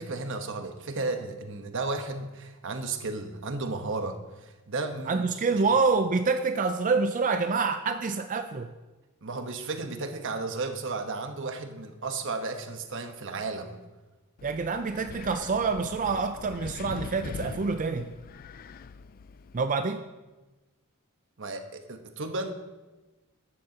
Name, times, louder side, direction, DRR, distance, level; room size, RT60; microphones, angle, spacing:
voice 1, 0.0-5.6 9.2-13.8 21.4-22.5, right 3 dB, 60° right, 6 dB, 1.1 m, -34 dB
voice 2, 5.1-8.7 14.4-18.1 19.5-20.0, right 4 dB, 40° right, 8 dB, 0.4 m, -27 dB
Wind, 14.4-19.7, left 5 dB, 40° left, 0.3 m, -42 dB
14.0 x 11.0 x 2.8 m, 1.2 s
head